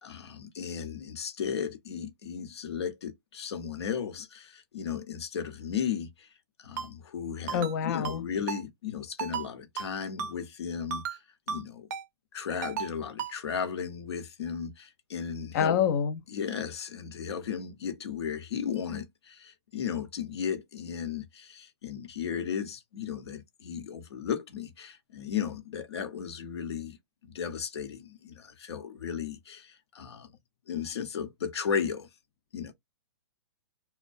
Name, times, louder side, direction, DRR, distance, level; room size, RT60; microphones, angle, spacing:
voice 1, 0.0-6.3 6.6-11.2 11.5-11.9 12.3-15.8 16.3-27.0 27.2-30.3 30.7-32.1 32.5-32.7, left 7 dB, 75° left, 0.8 m, -35 dB
Ringtone, 6.8-6.9 7.5-7.8 8.0-8.2 8.5-8.6 9.2-9.5 9.8-9.9 10.2-10.3 10.9-11.2 11.5-11.6 11.9-12.0 12.6-12.9 13.2-13.3, right 7 dB, 45° right, 0.5 m, -34 dB
voice 2, 7.5-8.3 15.5-16.2, left 8 dB, 40° left, 0.4 m, -26 dB
2.4 x 2.1 x 2.4 m
hypercardioid pair, 155°, 14 cm